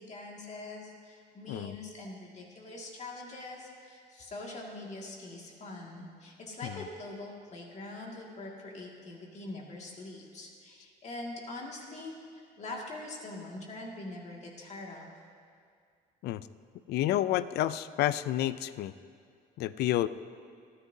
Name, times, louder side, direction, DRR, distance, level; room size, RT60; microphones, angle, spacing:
voice 1, 0.0-15.1, left 2 dB, 40° left, -2 dB, 2.1 m, -43 dB
voice 2, 16.9-18.9 19.6-20.1, left 13 dB, 75° left, 15 dB, 0.5 m, -29 dB
28.0 x 9.7 x 2.8 m, 2.2 s
cardioid pair, 110°, 17 cm